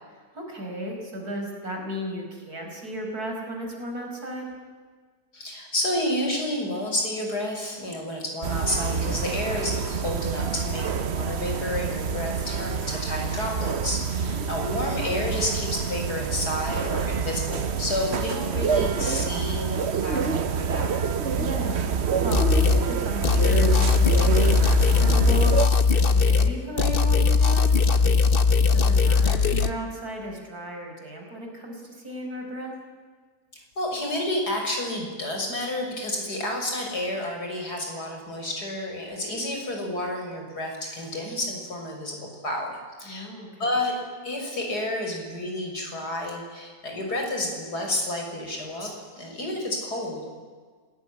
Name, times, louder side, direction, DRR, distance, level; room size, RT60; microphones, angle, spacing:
voice 1, 0.3-4.5 14.3-14.9 21.3-25.6 25.9-28.4 28.7-32.8 43.0-43.7, equal, 70° right, 1 dB, 5.6 m, -35 dB
voice 2, 5.3-20.9 33.8-43.3 43.6-44.0 44.2-50.3, left 1 dB, 85° left, 1 dB, 7.0 m, -30 dB
sound 1, 8.4-25.7, right 6 dB, 50° right, 1.1 m, -27 dB
sound 2, 22.3-22.8 23.2-26.5 26.8-29.7, left 5 dB, 40° left, 1.3 m, -19 dB
27.0 x 19.0 x 9.9 m, 1.5 s
omnidirectional pair, 1.7 m